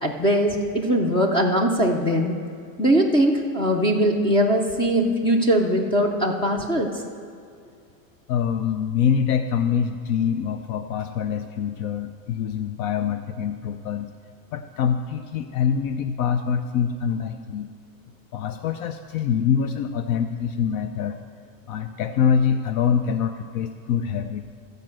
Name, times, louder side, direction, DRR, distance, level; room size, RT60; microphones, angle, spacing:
voice 1, 0.0-2.4 2.8-7.0, equal, 10° left, 2 dB, 0.4 m, -21 dB
voice 2, 8.3-14.1 14.5-17.7 18.3-21.2 21.7-24.5, left 7 dB, 60° left, 9 dB, 0.6 m, -25 dB
14.0 x 5.2 x 7.6 m, 2.3 s
cardioid pair, 160°, 47 cm